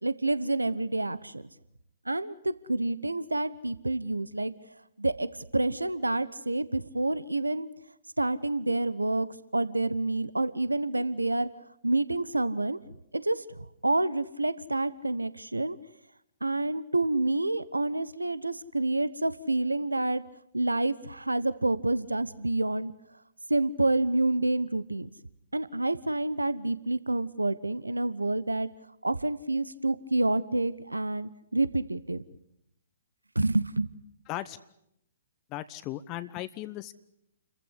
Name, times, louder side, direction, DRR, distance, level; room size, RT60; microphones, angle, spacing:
voice 1, 0.0-1.5 2.1-4.5 5.0-5.3 5.5-7.7 8.2-9.3 9.5-11.5 11.8-12.8 13.1-15.8 16.4-20.2 20.5-22.9 23.5-25.1 25.5-28.7 29.0-32.3 33.3-33.9, right 2 dB, 90° right, 17 dB, 1.0 m, -28 dB
voice 2, 35.5-36.9, left 15 dB, 30° left, 13 dB, 1.0 m, -37 dB
29.0 x 15.0 x 9.8 m, 0.80 s
figure-of-eight pair, 120°, 0 cm